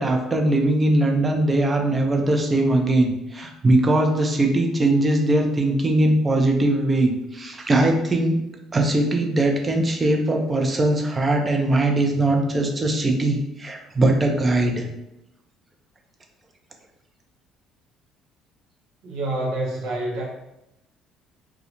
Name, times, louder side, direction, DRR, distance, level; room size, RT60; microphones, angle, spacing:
voice 1, 0.0-8.4 8.7-14.9, right 2 dB, 30° right, 2 dB, 0.6 m, -20 dB
voice 2, 19.0-20.2, right 1 dB, 75° right, -3 dB, 0.7 m, -27 dB
2.4 x 2.2 x 2.9 m, 0.87 s
hypercardioid pair, 60°, 0 cm